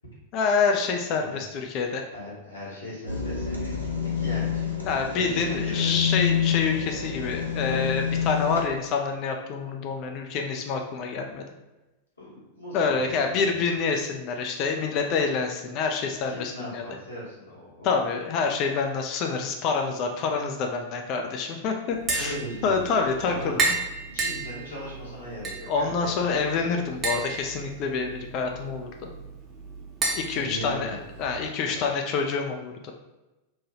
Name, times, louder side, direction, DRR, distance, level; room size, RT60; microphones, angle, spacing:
voice 1, 0.3-2.0 4.9-11.5 12.7-16.8 17.8-22.4 22.6-23.8 25.7-29.1 30.1-32.9, left 5 dB, 40° left, 3 dB, 0.3 m, -27 dB
voice 2, 2.1-6.0 12.2-13.2 13.5-13.6 16.3-18.1 22.1-22.8 23.2-23.7 24.1-26.2 26.5-27.2 30.3-31.8, left 1 dB, 80° left, -7 dB, 1.3 m, -39 dB
sound 1, 3.1-8.6, left 7 dB, 90° right, 0.6 m, -27 dB
Tap, 21.9-31.4, right 3 dB, 25° right, 0.7 m, -33 dB
3.1 x 2.2 x 2.9 m, 1.0 s
figure-of-eight pair, 90°, 0 cm